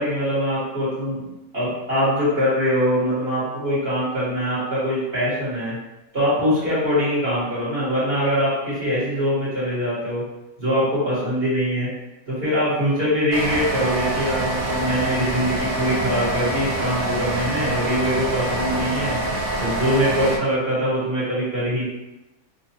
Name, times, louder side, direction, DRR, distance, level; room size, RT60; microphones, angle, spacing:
voice 1, 0.0-5.8 6.1-10.2 10.6-11.9 12.3-19.2 19.6-21.9, equal, 40° right, -9 dB, 1.8 m, -23 dB
sound 1, 13.3-20.4, right 2 dB, 60° right, 0.5 m, -25 dB
5.1 x 2.6 x 2.9 m, 0.98 s
omnidirectional pair, 1.6 m